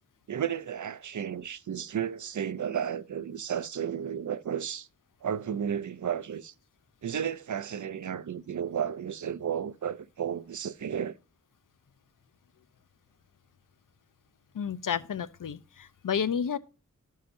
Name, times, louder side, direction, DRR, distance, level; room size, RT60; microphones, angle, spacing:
voice 1, 0.3-4.9 5.2-6.5 7.0-11.1, right 8 dB, 70° right, 0.5 m, -33 dB
voice 2, 14.5-16.6, left 7 dB, 85° left, 0.5 m, -31 dB
13.5 x 5.6 x 2.5 m
wide cardioid pair, 60°, 31 cm